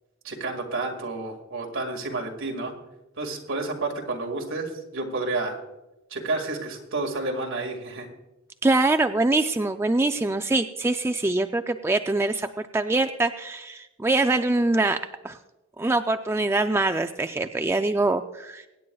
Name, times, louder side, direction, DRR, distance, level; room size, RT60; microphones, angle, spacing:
voice 1, 0.2-2.7 3.2-5.6 6.1-8.1, right 3 dB, 65° right, 1 dB, 2.0 m, -30 dB
voice 2, 8.6-15.0 15.2-15.4 15.8-18.7, right 2 dB, 10° right, 7 dB, 0.3 m, -24 dB
23.5 x 9.1 x 2.3 m, 1.0 s
head